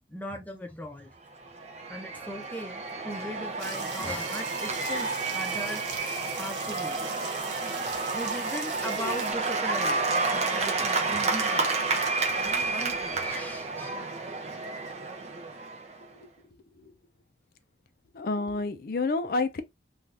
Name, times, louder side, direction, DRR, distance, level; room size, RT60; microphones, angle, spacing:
voice 1, 0.1-1.1 1.9-6.1 6.4-7.1 8.1-11.8 12.7-14.0, equal, 10° left, 0.6 m, -38 dB
Cheering / Applause / Crowd, 1.3-16.1, right 3 dB, 40° right, 0.5 m, -30 dB
sound 1, 3.6-9.3, right 5 dB, 90° right, 0.8 m, -41 dB
voice 2, 18.1-19.6, left 3 dB, 55° left, 0.4 m, -29 dB
2.7 x 2.4 x 3.2 m
head